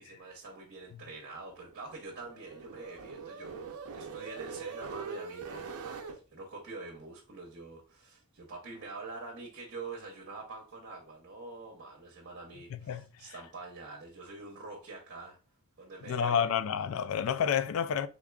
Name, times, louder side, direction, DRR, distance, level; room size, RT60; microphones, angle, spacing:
voice 1, 0.0-15.4 15.8-16.5, right 3 dB, 50° right, 0.9 m, -45 dB
sound 1, 1.5-6.2, right 5 dB, 70° right, 0.5 m, -43 dB
voice 2, 12.7-13.3 16.1-18.1, left 8 dB, 65° left, 0.3 m, -30 dB
3.6 x 3.6 x 2.3 m
head